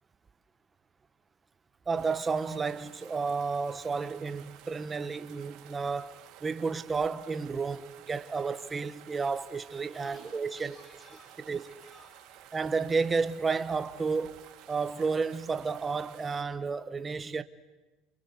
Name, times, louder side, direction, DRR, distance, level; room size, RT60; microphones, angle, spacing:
voice 1, 1.9-10.8 11.5-11.7 12.5-14.4 14.7-17.4, right 4 dB, 15° right, 0.8 m, -31 dB
sound 1, 1.9-16.4, right 12 dB, 45° right, 2.9 m, -53 dB
voice 2, 9.9-12.5, right 1 dB, 5° left, 3.9 m, -55 dB
29.0 x 25.0 x 8.1 m
cardioid pair, 180°, 0 cm